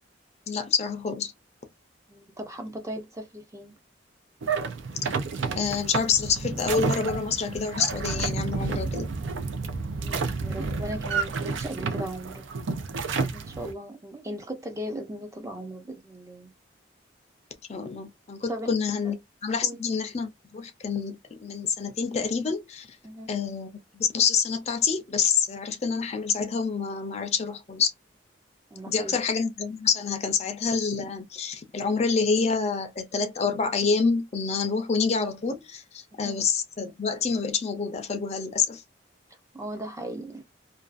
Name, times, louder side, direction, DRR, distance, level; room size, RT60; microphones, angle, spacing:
voice 1, 0.5-1.3 5.6-9.1 17.7-19.2 19.4-23.0 23.3-27.9 28.9-38.8, left 5 dB, 35° left, 0.5 m, -27 dB
voice 2, 2.1-3.7 10.0-12.5 13.3-16.5 18.5-18.7 19.6-19.8 23.0-23.3 28.7-29.2 36.2-36.4 39.5-40.4, right 1 dB, 15° right, 0.5 m, -37 dB
sound 1, 4.4-13.7, right 4 dB, 80° right, 0.5 m, -30 dB
2.5 x 2.3 x 2.3 m
head